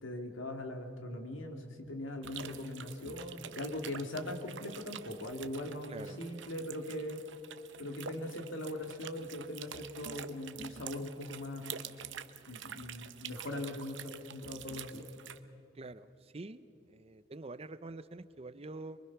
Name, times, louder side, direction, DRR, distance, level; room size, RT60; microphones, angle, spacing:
voice 1, 0.0-7.2 7.8-11.8 12.4-15.1, left 1 dB, 85° left, 5 dB, 2.2 m, -40 dB
sound 1, 2.2-15.4, right 8 dB, 70° right, 0.8 m, -47 dB
voice 2, 5.9-6.2 15.7-19.0, right 2 dB, 30° right, 14 dB, 0.5 m, -46 dB
24.0 x 23.0 x 5.9 m, 2.6 s
head